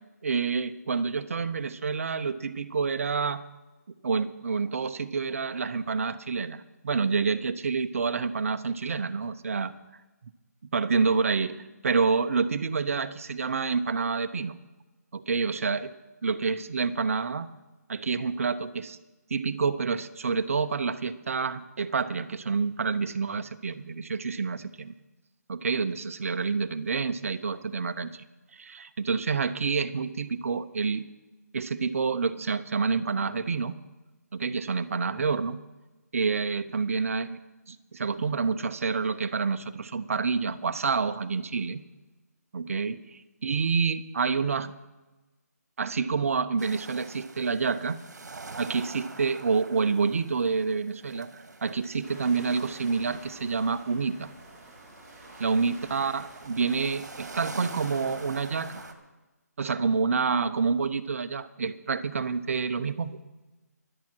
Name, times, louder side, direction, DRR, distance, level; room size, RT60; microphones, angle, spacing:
voice 1, 0.2-3.4 4.0-9.7 10.7-14.5 15.1-15.9 16.2-17.5 17.9-19.0 19.3-24.9 25.5-28.2 28.5-31.0 31.5-33.7 34.3-35.6 36.1-37.4 37.7-41.8 42.5-44.7 45.8-48.0 48.6-51.3 51.6-54.3 55.4-58.8 59.6-63.2, right 5 dB, 55° right, 11 dB, 0.8 m, -28 dB
sound 1, 46.6-58.9, right 3 dB, 75° right, 1.8 m, -46 dB
sound 2, 52.0-58.8, right 2 dB, 15° right, 5.8 m, -48 dB
24.0 x 8.6 x 4.6 m, 1.1 s
hypercardioid pair, 165°, 9 cm